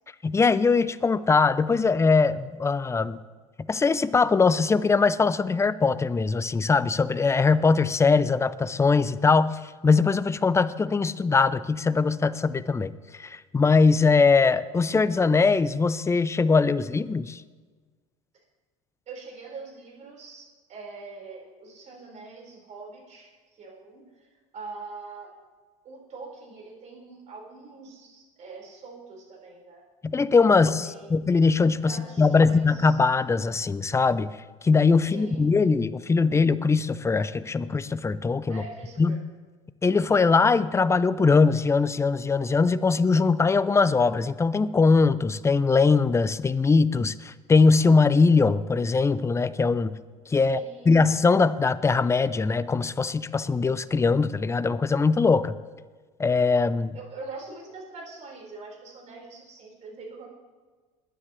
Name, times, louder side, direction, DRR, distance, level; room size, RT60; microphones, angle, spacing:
voice 1, 0.2-3.2 3.6-12.9 13.2-17.4 30.0-34.3 34.6-38.6 39.0-39.2 39.8-49.9 50.3-50.6 50.8-55.6 56.2-57.0, left 4 dB, 15° left, 15 dB, 0.6 m, -21 dB
voice 2, 19.1-25.3 25.8-29.8 30.5-31.1 31.8-33.0 35.1-35.4 38.5-39.2 50.4-51.1 56.9-60.3, right 3 dB, 45° right, -1 dB, 4.8 m, -43 dB
20.5 x 10.0 x 3.2 m, 1.4 s
hypercardioid pair, 75°, 17 cm